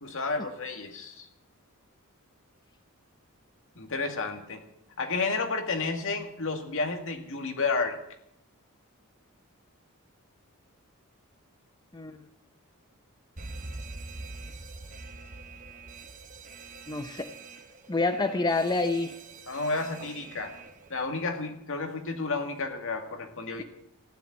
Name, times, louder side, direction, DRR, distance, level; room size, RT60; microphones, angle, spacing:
voice 1, 0.0-1.3 3.8-4.6 5.0-8.0 19.5-20.6 20.9-23.6, left 3 dB, 60° left, 5 dB, 2.1 m, -31 dB
Alarm, 13.4-21.1, right 3 dB, 35° right, 1.1 m, -44 dB
voice 2, 16.9-17.3 17.9-19.2, left 3 dB, 20° left, 8 dB, 0.6 m, -27 dB
15.0 x 10.5 x 8.5 m, 0.78 s
head